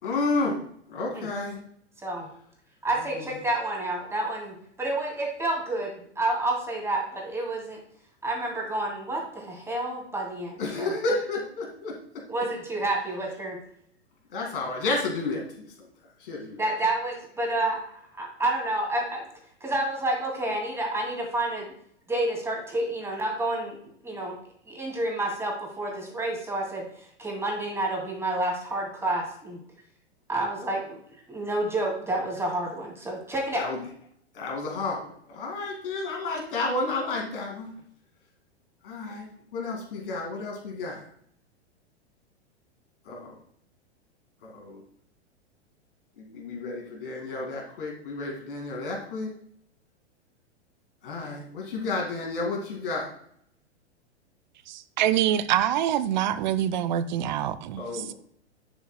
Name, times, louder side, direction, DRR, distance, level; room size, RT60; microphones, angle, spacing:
voice 1, 0.0-0.6 0.9-1.6 3.0-3.3 10.6-11.9 14.3-15.7 16.2-16.6 33.5-33.8 34.3-37.7 38.8-39.3 39.5-41.0 43.1-43.4 44.4-44.8 46.2-49.3 51.0-53.1 57.8-58.1, left 3 dB, 50° left, 2.4 m, -31 dB
voice 2, 2.8-7.8 8.2-10.9 12.3-13.6 16.6-17.8 18.2-19.2 19.6-21.7 22.1-23.8 24.0-24.4 24.7-26.8 27.2-29.6 30.3-31.0 31.3-33.6, right 2 dB, 10° right, 2.6 m, -29 dB
voice 3, 54.7-58.1, right 11 dB, 40° right, 0.6 m, -25 dB
10.5 x 7.0 x 2.3 m
figure-of-eight pair, 100°, 34 cm